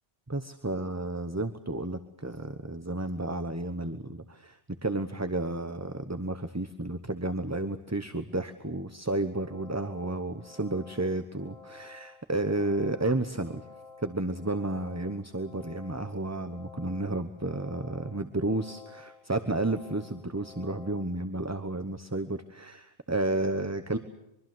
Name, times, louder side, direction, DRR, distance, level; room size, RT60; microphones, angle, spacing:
voice 1, 0.3-13.6 14.0-22.8 23.1-24.0, right 2 dB, 15° right, 9 dB, 1.0 m, -32 dB
sound 1, 9.2-21.0, left 4 dB, 80° left, 3.9 m, -51 dB
24.0 x 24.0 x 7.8 m, 0.86 s
omnidirectional pair, 1.1 m